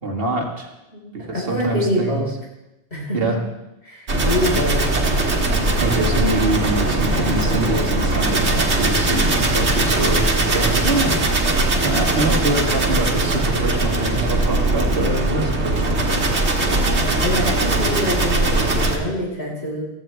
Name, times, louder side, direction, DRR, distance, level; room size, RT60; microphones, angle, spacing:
voice 1, 0.0-0.7 1.1-2.2 3.1-3.4 5.8-11.2 11.8-16.2, right 2 dB, 60° right, 0 dB, 2.0 m, -24 dB
voice 2, 0.9-2.3 2.9-3.2 3.8-4.8 16.6-19.8, equal, 70° left, -4 dB, 4.8 m, -25 dB
sound 1, 4.1-19.0, right 2 dB, 80° right, 1.9 m, -20 dB
16.0 x 14.0 x 3.4 m, 0.95 s
omnidirectional pair, 1.1 m